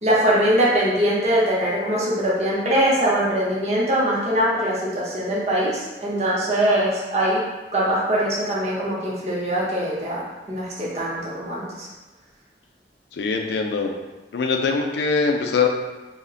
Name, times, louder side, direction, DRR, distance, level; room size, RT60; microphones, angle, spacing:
voice 1, 0.0-7.4 7.7-11.9, right 1 dB, 35° right, -6 dB, 0.6 m, -22 dB
voice 2, 13.2-13.9 14.3-15.7, left 4 dB, 70° left, 3 dB, 0.3 m, -22 dB
2.4 x 2.1 x 3.7 m, 1.2 s
head